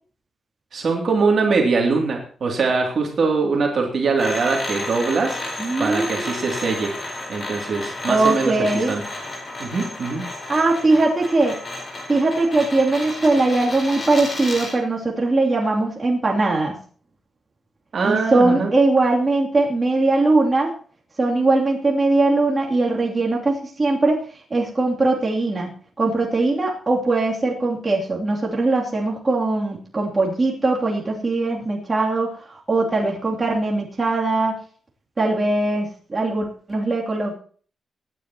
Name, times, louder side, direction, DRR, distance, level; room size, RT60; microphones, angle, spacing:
voice 1, 0.7-6.9 7.3-9.0 9.6-10.2 17.9-18.7, right 4 dB, 55° right, 0 dB, 2.8 m, -22 dB
sound 1, 4.2-14.8, left 2 dB, 40° left, 4.5 m, -32 dB
voice 2, 5.6-6.2 8.1-8.9 10.5-11.6 12.1-16.7 18.0-20.7 21.2-24.2 24.5-25.7 26.0-34.6 35.2-37.3, right 2 dB, 25° right, -3 dB, 3.0 m, -20 dB
23.5 x 9.9 x 3.0 m, 0.43 s
wide cardioid pair, 125°, 0 cm